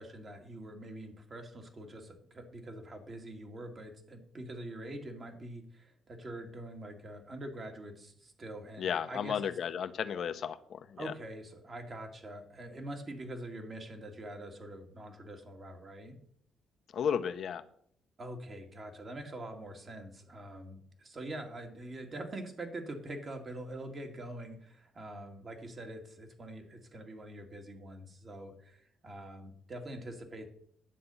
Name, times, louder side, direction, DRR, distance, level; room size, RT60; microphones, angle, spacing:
voice 1, 0.0-9.5 11.0-16.2 18.2-30.5, right 1 dB, 40° right, 3 dB, 2.2 m, -44 dB
voice 2, 8.8-11.1 16.9-17.6, left 8 dB, 60° left, 10 dB, 0.8 m, -34 dB
10.0 x 7.6 x 5.6 m, 0.63 s
cardioid pair, 90°, 0 cm